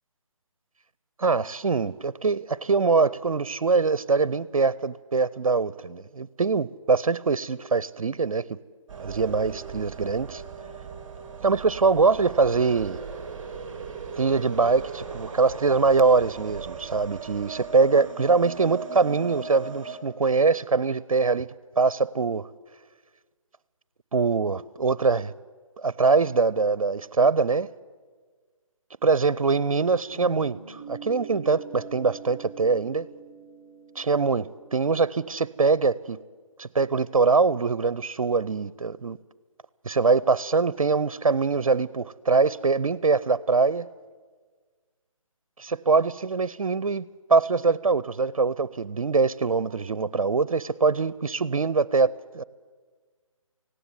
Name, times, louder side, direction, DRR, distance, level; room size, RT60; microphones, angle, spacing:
voice 1, 1.2-8.6 9.0-10.4 11.4-13.0 14.2-21.5 21.8-22.5 24.1-25.3 25.8-27.7 29.0-33.1 34.0-36.2 36.6-39.2 39.8-43.9 45.6-52.4, right 4 dB, 80° right, 0.6 m, -23 dB
sound 1, 8.9-20.0, right 5 dB, 15° right, 2.4 m, -38 dB
Guitar, 30.1-35.2, right 6 dB, 5° left, 2.5 m, -44 dB
18.0 x 16.5 x 9.7 m
figure-of-eight pair, 150°, 17 cm